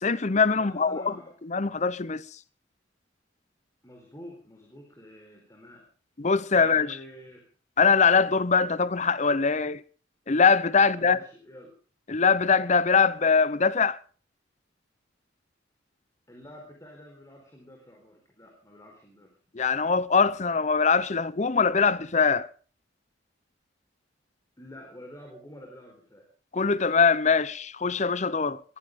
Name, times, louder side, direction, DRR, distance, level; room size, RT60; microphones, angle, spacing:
voice 1, 0.0-1.1 1.4-2.2 6.2-6.9 7.8-9.8 10.3-11.2 12.1-14.0 19.5-22.5 26.5-28.6, left 5 dB, 40° left, 0.7 m, -22 dB
voice 2, 0.5-1.4 3.8-5.9 6.5-7.4 10.8-11.7 16.3-19.3 24.6-26.2, left 1 dB, 20° left, 4.4 m, -48 dB
22.5 x 15.5 x 3.7 m
head